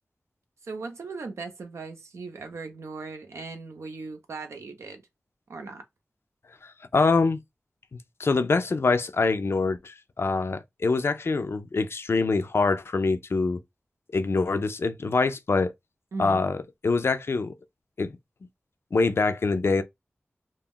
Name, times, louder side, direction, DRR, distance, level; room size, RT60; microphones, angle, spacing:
voice 1, 0.6-5.0 5.5-5.8 16.1-16.4, right 4 dB, 90° right, 0.6 m, -38 dB
voice 2, 6.6-7.4 7.9-13.6 14.1-15.7 16.2-16.6 16.8-17.5 18.0-18.2 18.9-19.8, left 3 dB, 60° left, 0.4 m, -25 dB
2.3 x 2.1 x 3.6 m
cardioid pair, 45°, 5 cm